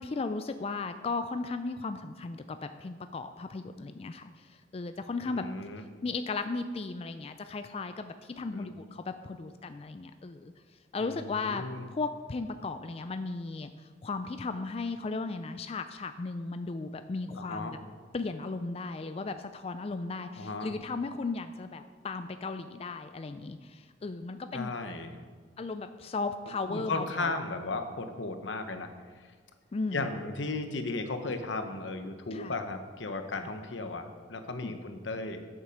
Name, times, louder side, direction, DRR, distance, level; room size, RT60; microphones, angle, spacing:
voice 1, 0.0-4.3 4.7-5.5 6.0-10.5 10.9-11.6 11.9-13.7 14.0-17.8 18.1-24.7 25.6-27.3 29.7-30.1 32.3-32.5 33.3-33.5 34.5-34.7, left 3 dB, 30° left, 9 dB, 0.3 m, -36 dB
voice 2, 5.2-5.8 8.5-8.7 11.0-11.9 17.3-17.8 20.4-20.7 24.5-25.3 26.7-28.9 29.9-35.4, left 3 dB, 85° left, 7 dB, 1.0 m, -35 dB
8.4 x 7.3 x 6.4 m, 1.5 s
head